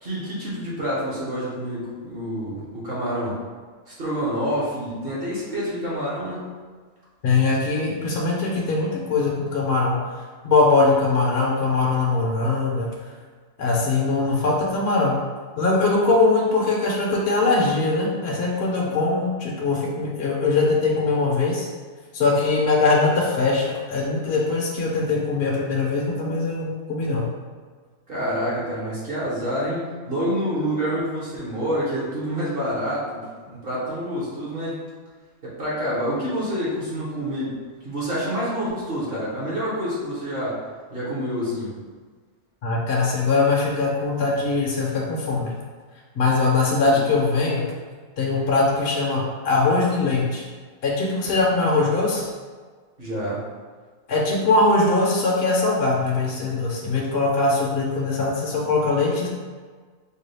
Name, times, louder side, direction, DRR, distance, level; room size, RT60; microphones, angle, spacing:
voice 1, 0.0-3.4 3.9-6.4 18.9-19.0 28.1-34.8 35.4-37.6 37.8-40.6 40.9-41.7 46.8-47.0 53.0-53.4, equal, 45° right, -7 dB, 1.2 m, -27 dB
voice 2, 7.2-10.0 10.4-12.9 13.6-15.2 15.6-21.7 22.1-27.3 42.6-45.6 46.1-47.6 48.2-50.4 50.8-52.3 54.1-59.3, left 3 dB, 55° left, -3 dB, 0.8 m, -21 dB
4.5 x 2.3 x 3.4 m, 1.5 s
omnidirectional pair, 1.4 m